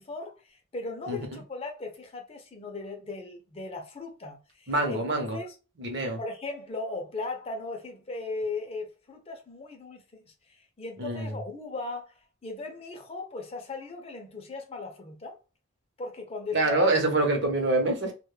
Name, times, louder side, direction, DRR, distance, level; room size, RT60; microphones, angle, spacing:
voice 1, 0.0-5.0 5.3-5.5 6.2-12.1 12.4-15.4 16.0-16.9, left 3 dB, 25° left, 0.4 m, -37 dB
voice 2, 1.1-1.4 4.7-5.4 5.8-6.2 11.0-11.3 16.5-18.1, right 2 dB, 55° right, 0.7 m, -26 dB
2.2 x 2.0 x 3.1 m
head